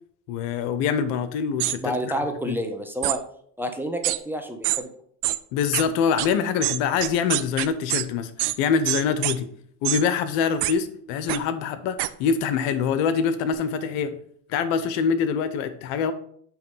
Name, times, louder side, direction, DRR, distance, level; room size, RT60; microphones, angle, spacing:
voice 1, 0.3-2.1 2.5-2.6 5.5-9.5 9.8-14.2 14.5-16.1, left 6 dB, 75° left, 12 dB, 0.9 m, -25 dB
sound 1, 1.6-1.8 3.0-3.2 4.0-4.2 4.6-4.8 5.2-5.4 5.7-5.8 6.2-6.3 6.6-8.0 8.4-8.6 8.9-9.4 9.8-10.0 10.6-10.7 11.3-11.4 12.0-12.1, right 17 dB, 55° right, 0.6 m, -25 dB
voice 2, 1.8-3.2 3.6-4.9, right 1 dB, 5° right, 4 dB, 1.0 m, -29 dB
8.7 x 3.1 x 5.4 m, 0.64 s
supercardioid pair, 85°, 49 cm